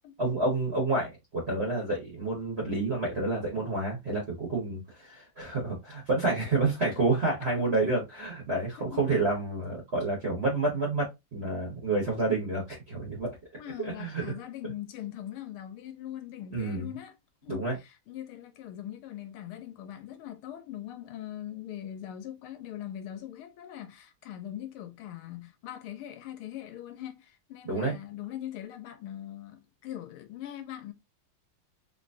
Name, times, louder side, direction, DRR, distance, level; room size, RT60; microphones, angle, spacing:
voice 1, 0.2-13.4 13.8-14.2 16.5-16.9 17.5-17.8 27.6-28.0, right 2 dB, 35° right, 1.3 m, -29 dB
voice 2, 8.8-9.2 13.6-17.1 17.4-30.9, left 12 dB, 85° left, 1.6 m, -41 dB
3.8 x 3.0 x 2.7 m
omnidirectional pair, 2.3 m